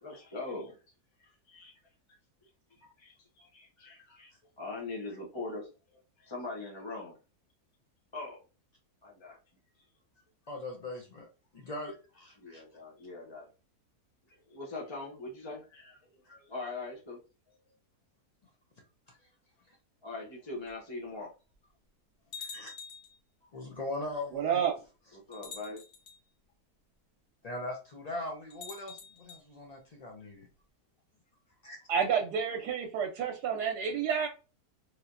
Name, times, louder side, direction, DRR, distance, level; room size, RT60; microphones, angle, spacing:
voice 1, 0.0-0.8 1.2-1.7 2.4-2.5 2.8-5.7 6.2-7.2 8.1-8.4 9.0-9.4 12.4-13.5 14.3-17.2 19.1-19.2 20.0-21.3 25.1-25.8, left 3 dB, 30° left, -2 dB, 0.5 m, -42 dB
voice 2, 10.5-11.3 11.5-12.6 22.4-22.7 23.5-24.6 27.4-30.5 31.6-31.8, left 2 dB, 85° left, 0 dB, 0.3 m, -40 dB
sound 1, 20.7-20.8 21.5-21.6 22.3-23.2 24.3-24.4 25.3-26.2 28.5-29.4, left 6 dB, 65° left, 0.8 m, -46 dB
voice 3, 24.3-24.7 31.9-34.3, right 7 dB, 85° right, 2 dB, 1.2 m, -29 dB
3.3 x 2.8 x 2.4 m, 0.32 s
omnidirectional pair, 1.7 m